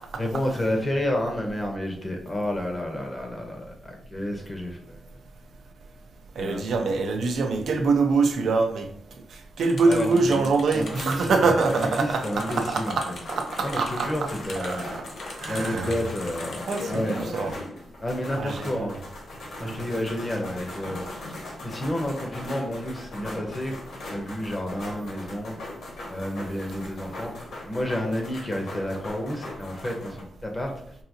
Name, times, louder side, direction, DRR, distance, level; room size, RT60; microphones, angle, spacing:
voice 1, 0.2-5.0 6.3-6.6 9.8-13.0 13.6-14.9 15.5-17.6 18.0-19.0 19.6-21.4 21.6-23.8 24.1-25.6 26.1-31.0, left 1 dB, 20° left, 2 dB, 0.7 m, -30 dB
voice 2, 6.4-8.9 9.6-14.3 14.6-15.0 15.4-15.9 16.7-17.5 18.4-19.0 19.6-19.8, right 4 dB, 75° right, 4 dB, 0.6 m, -24 dB
sound 1, 9.6-17.0, left 3 dB, 70° left, 0.8 m, -42 dB
sound 2, 10.7-30.2, left 2 dB, 90° left, 1.3 m, -39 dB
4.6 x 2.8 x 2.7 m, 0.67 s
wide cardioid pair, 125°, 0 cm